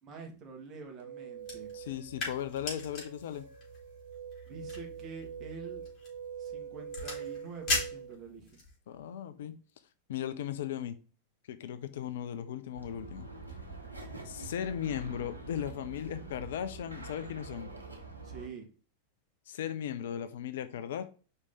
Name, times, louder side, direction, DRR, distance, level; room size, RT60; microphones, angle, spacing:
voice 1, 0.0-1.7 4.5-5.8 6.4-8.6 18.2-18.7, right 4 dB, 30° right, 2.0 m, -46 dB
sound 1, 1.0-8.2, right 7 dB, 60° right, 1.2 m, -44 dB
sound 2, 1.4-8.8, left 3 dB, 35° left, 3.7 m, -40 dB
voice 2, 1.7-3.5 8.9-9.5 10.1-11.0 11.5-13.3 14.2-17.7 19.5-21.0, left 10 dB, 60° left, 0.6 m, -37 dB
sound 3, 12.7-18.5, right 3 dB, 80° right, 1.3 m, -45 dB
5.4 x 4.7 x 4.0 m
figure-of-eight pair, 90°, 0 cm